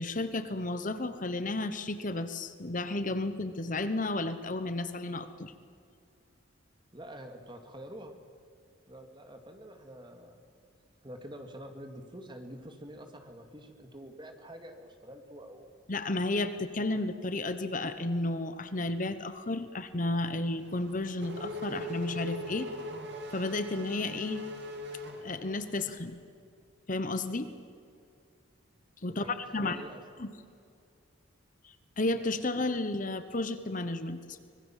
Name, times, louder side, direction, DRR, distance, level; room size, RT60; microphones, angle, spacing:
voice 1, 0.0-5.5 15.9-22.7 23.3-24.5 25.2-26.2 26.9-27.5 29.0-29.8 30.2-30.3 31.6-34.4, left 2 dB, 40° left, 11 dB, 1.1 m, -32 dB
voice 2, 6.9-8.1 8.9-10.4 11.0-15.7 29.1-30.0, equal, 25° right, 5 dB, 2.3 m, -47 dB
Race car auto racing / Accelerating revving vroom, 20.6-25.9, left 1 dB, 55° right, 3.1 m, -40 dB
25.5 x 21.0 x 7.4 m, 2.4 s
head